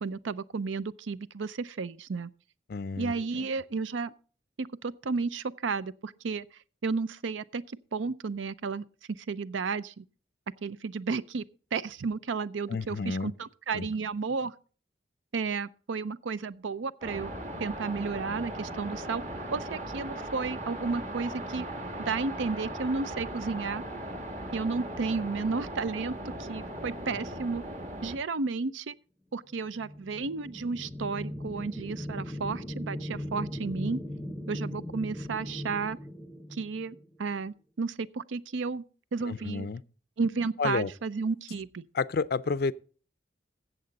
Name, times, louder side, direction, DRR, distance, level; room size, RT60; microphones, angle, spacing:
voice 1, 0.0-2.3 3.0-4.1 4.6-6.4 6.8-7.6 7.9-8.8 9.3-10.0 10.6-11.4 11.7-14.5 15.3-17.3 17.6-19.2 19.5-21.7 22.0-23.8 24.5-26.1 26.4-27.6 28.0-28.9 29.3-34.0 34.5-36.0 36.5-38.8 39.1-39.7 40.2-41.8, right 4 dB, 80° right, 0.5 m, -32 dB
voice 2, 2.7-3.1 12.7-13.3 13.7-13.9 39.2-39.8 40.6-40.9 41.9-42.7, left 4 dB, 50° left, 0.4 m, -30 dB
sound 1, 17.0-28.2, right 1 dB, 40° right, 1.4 m, -38 dB
sound 2, 29.6-37.3, left 1 dB, 5° left, 0.7 m, -38 dB
14.0 x 7.9 x 4.0 m
head